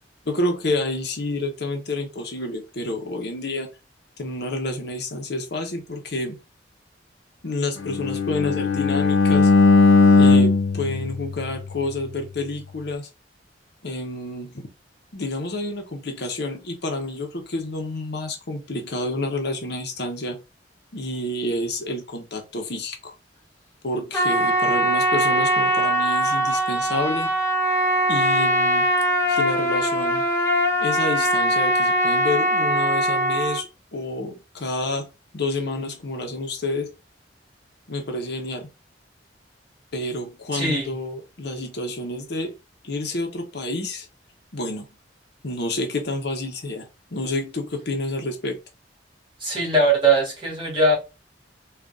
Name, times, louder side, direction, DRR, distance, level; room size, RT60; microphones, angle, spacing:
voice 1, 0.3-3.7 4.2-6.4 7.4-9.5 10.2-13.1 13.8-14.7 15.1-20.4 20.9-23.1 23.8-27.3 28.1-28.9 29.3-30.3 30.8-36.9 37.9-38.7 39.9-42.5 42.8-44.1 44.5-44.9 45.4-48.6, left 2 dB, 65° left, 0.9 m, -29 dB
Bowed string instrument, 7.8-12.0, left 3 dB, 85° left, 0.4 m, -18 dB
Trumpet, 24.1-33.6, right 1 dB, 15° left, 1.1 m, -21 dB
voice 2, 40.5-40.9 49.4-50.9, right 2 dB, 30° right, 2.3 m, -20 dB
3.9 x 2.5 x 3.5 m
head